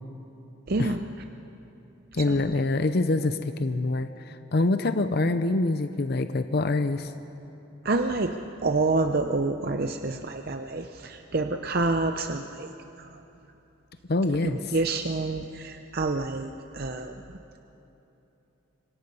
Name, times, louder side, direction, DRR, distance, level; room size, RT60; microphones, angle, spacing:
voice 1, 0.7-1.0 2.3-2.4 7.8-12.7 13.0-13.1 14.4-17.1, right 3 dB, 45° right, 6 dB, 0.7 m, -28 dB
voice 2, 2.1-7.1 14.1-14.7, left 2 dB, 50° left, 9 dB, 0.6 m, -25 dB
26.0 x 23.5 x 5.5 m, 3.0 s
head